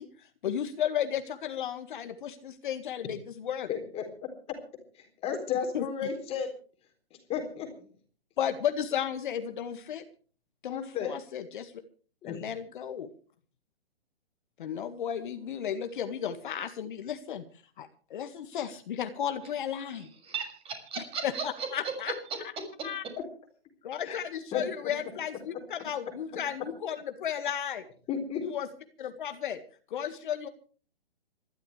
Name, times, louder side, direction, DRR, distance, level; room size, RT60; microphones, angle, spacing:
voice 1, 0.0-3.7 5.7-5.9 8.4-10.0 10.6-11.7 12.2-13.1 14.6-17.4 17.8-20.1 21.2-22.1 22.8-23.0 23.8-27.8 28.4-28.7 29.0-29.6 29.9-30.5, left 9 dB, 50° left, 8 dB, 1.9 m, -34 dB
voice 2, 3.7-4.0 4.9-6.5 7.3-7.9 10.7-11.1 12.2-12.4 24.0-24.2 24.5-24.9 28.1-28.4, left 7 dB, 20° left, 4 dB, 4.0 m, -33 dB
voice 3, 19.8-21.9 22.3-23.1, right 5 dB, 20° right, 6 dB, 6.4 m, -37 dB
27.0 x 12.5 x 3.3 m, 0.41 s
hypercardioid pair, 140°, 31 cm